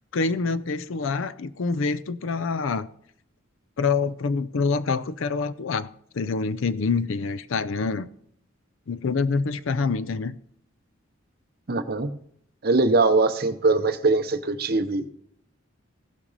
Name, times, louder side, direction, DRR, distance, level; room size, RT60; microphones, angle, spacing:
voice 1, 0.1-2.9 3.8-5.9 6.1-8.1 8.9-10.4, left 4 dB, 65° left, 0.5 m, -26 dB
voice 2, 11.7-12.1 12.6-15.1, right 3 dB, 45° right, 0.7 m, -22 dB
15.5 x 6.0 x 4.0 m
head